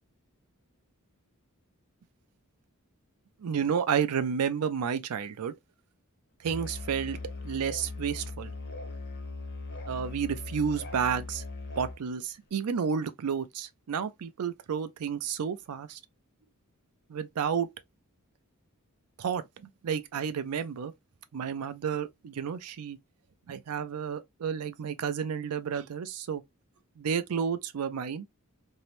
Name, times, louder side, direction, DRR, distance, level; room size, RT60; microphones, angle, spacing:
voice 1, 3.4-5.5 6.4-7.2 7.4-8.5 9.9-11.4 11.8-16.0 17.1-17.7 19.2-19.4 19.8-20.9 21.3-23.0 23.5-26.4 27.0-28.3, right 7 dB, 80° right, 0.4 m, -31 dB
Musical instrument, 6.4-12.0, left 3 dB, 50° left, 0.6 m, -39 dB
2.7 x 2.0 x 3.0 m
head